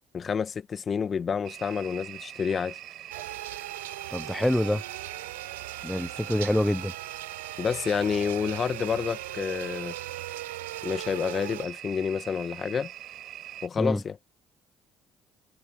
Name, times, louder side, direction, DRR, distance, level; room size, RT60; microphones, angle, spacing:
voice 1, 0.1-2.8 7.6-9.9 10.8-12.9 13.6-14.2, left 6 dB, 40° left, 1.0 m, -29 dB
sound 1, 1.4-13.7, right 12 dB, 60° right, 5.4 m, -43 dB
sound 2, 3.1-11.7, right 16 dB, 90° right, 4.7 m, -39 dB
voice 2, 4.1-4.8 5.8-6.9 13.8-14.0, left 1 dB, 5° left, 0.6 m, -26 dB
hypercardioid pair, 65°, 0 cm